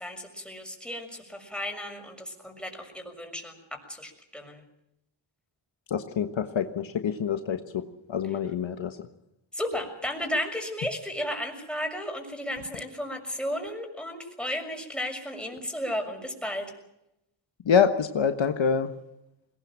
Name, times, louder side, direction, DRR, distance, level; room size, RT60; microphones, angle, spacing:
voice 1, 0.0-4.6 8.2-8.5 9.5-16.7, left 1 dB, ahead, 2 dB, 6.6 m, -34 dB
voice 2, 5.9-7.8 8.1-9.0 17.6-18.9, left 7 dB, 70° left, 8 dB, 1.4 m, -26 dB
21.5 x 19.5 x 7.5 m, 0.84 s
cardioid pair, 75°, 48 cm